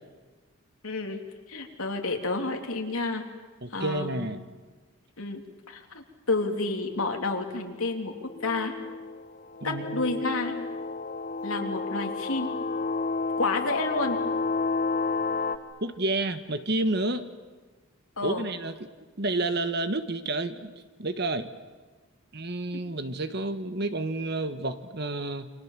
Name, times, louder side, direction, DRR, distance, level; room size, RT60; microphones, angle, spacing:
voice 1, 0.8-1.2 1.5-3.2 3.7-4.3 5.2-5.4 5.7-8.1 8.4-8.7 9.6-10.6 11.4-12.5 13.4-14.2 18.2-18.5 22.7-22.8, left 3 dB, 75° left, 3 dB, 3.2 m, -30 dB
voice 2, 3.6-4.4 9.6-10.1 15.8-17.3 18.2-18.7 19.2-20.7 21.0-21.5 22.3-25.5, right 2 dB, 50° right, 10 dB, 1.4 m, -30 dB
sound 1, 8.2-15.6, left 4 dB, 40° left, 1.2 m, -31 dB
29.5 x 26.0 x 7.5 m, 1.3 s
head